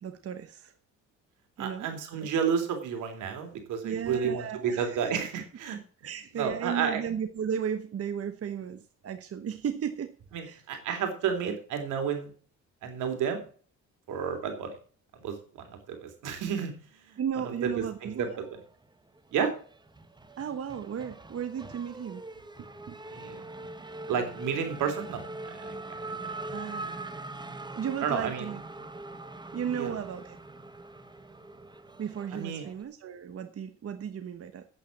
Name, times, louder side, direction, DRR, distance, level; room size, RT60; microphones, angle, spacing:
voice 1, 0.0-0.7 1.6-1.9 2.2-2.3 3.8-5.1 6.0-10.1 10.4-10.6 17.2-18.3 20.4-22.2 22.6-23.0 26.5-27.0 27.7-28.6 29.5-30.4 32.0-34.7, right 8 dB, 50° right, 9 dB, 1.1 m, -35 dB
voice 2, 1.6-5.8 6.3-7.0 10.3-12.3 12.8-13.5 14.1-14.8 15.1-17.2 17.6-18.5 19.3-19.5 23.1-23.4 24.1-26.2 26.4-26.5 28.0-28.4 29.7-29.9 32.3-32.7, right 7 dB, 85° right, 6 dB, 3.4 m, -31 dB
Race car auto racing / Accelerating revving vroom, 17.8-18.8 19.2-32.8, right 2 dB, 15° right, 1.4 m, -42 dB
9.0 x 8.5 x 7.2 m, 0.42 s
cardioid pair, 90°, 30 cm